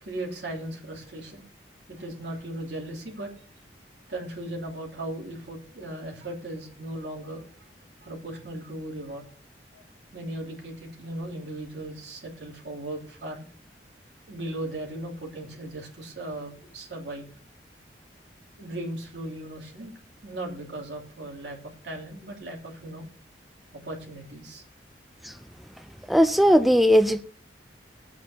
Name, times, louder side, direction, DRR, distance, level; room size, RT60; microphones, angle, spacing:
voice 1, 0.0-1.5 1.9-3.3 4.1-7.4 8.0-9.2 9.7-9.8 10.1-13.4 14.3-17.3 18.6-19.9 20.2-21.6 21.8-23.1 23.7-24.6, right 1 dB, 75° right, 3.0 m, -37 dB
voice 2, 26.1-27.2, equal, ahead, 0.4 m, -18 dB
20.5 x 8.4 x 2.9 m
head